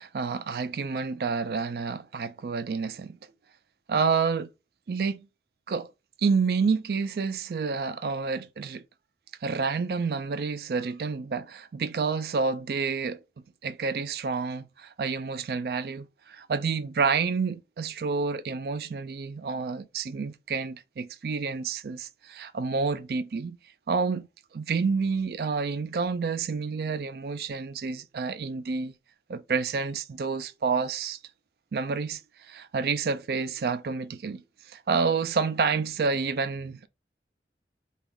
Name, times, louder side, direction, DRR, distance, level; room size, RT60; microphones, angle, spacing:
voice 1, 0.0-3.2 3.9-4.5 4.9-5.3 5.7-5.9 6.2-8.8 9.4-13.2 13.6-23.6 23.9-24.3 24.5-28.9 29.3-31.2 31.7-36.9, right 5 dB, 60° right, 0.4 m, -29 dB
4.0 x 2.3 x 3.6 m
head